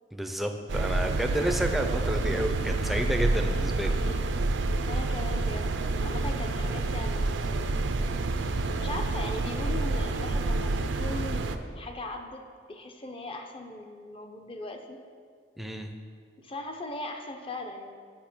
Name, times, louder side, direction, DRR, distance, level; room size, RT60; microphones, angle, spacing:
voice 1, 0.1-4.0 15.6-15.9, right 1 dB, ahead, 4 dB, 0.5 m, -30 dB
sound 1, 0.7-11.6, right 2 dB, 85° right, 0.5 m, -28 dB
voice 2, 4.0-4.4 4.9-5.7 6.0-7.7 8.8-12.4 12.7-15.0 16.4-17.9, left 2 dB, 30° left, 4 dB, 0.8 m, -39 dB
8.6 x 6.0 x 6.1 m, 2.1 s
head